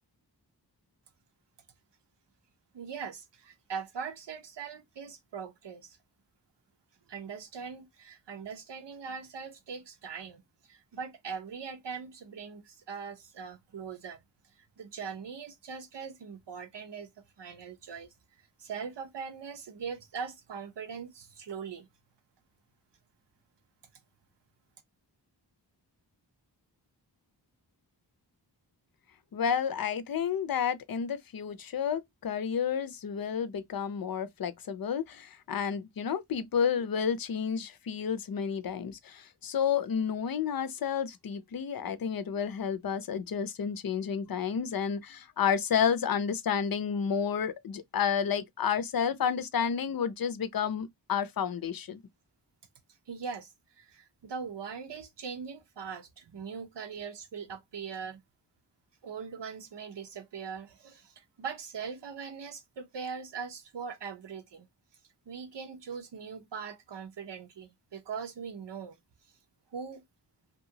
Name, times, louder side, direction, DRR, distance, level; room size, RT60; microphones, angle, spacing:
voice 1, 2.7-6.0 7.1-10.4 10.7-14.2 14.8-17.1 17.4-18.1 18.6-21.9 53.1-58.2 59.0-64.7 65.3-69.0 69.7-70.0, right 6 dB, 75° right, 0.7 m, -41 dB
voice 2, 29.3-52.0, left 7 dB, 55° left, 0.5 m, -31 dB
2.8 x 2.3 x 2.7 m
wide cardioid pair, 55°, 42 cm